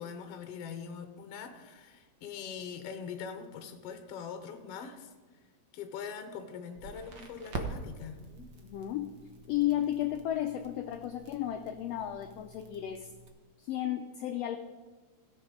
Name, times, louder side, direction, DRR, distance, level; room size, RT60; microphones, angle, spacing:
voice 1, 0.0-5.1 5.7-8.5, left 6 dB, 65° left, 6 dB, 1.8 m, -42 dB
Crackle, 6.7-13.3, right 3 dB, 80° right, 0.9 m, -45 dB
voice 2, 8.6-9.2 9.5-13.1 13.6-14.6, left 12 dB, 90° left, 6 dB, 1.4 m, -33 dB
17.0 x 6.7 x 5.2 m, 1.3 s
omnidirectional pair, 3.5 m